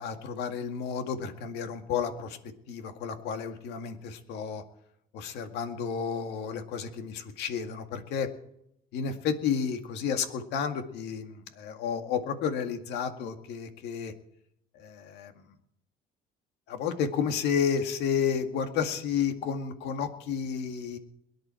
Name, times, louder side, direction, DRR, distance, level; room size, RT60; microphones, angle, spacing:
voice 1, 0.0-2.4 2.7-4.6 5.1-8.3 8.9-14.1 14.8-15.3 16.7-21.0, left 7 dB, 85° left, 7 dB, 2.0 m, -31 dB
22.5 x 10.5 x 4.5 m, 0.76 s
cardioid pair, 110°, 17 cm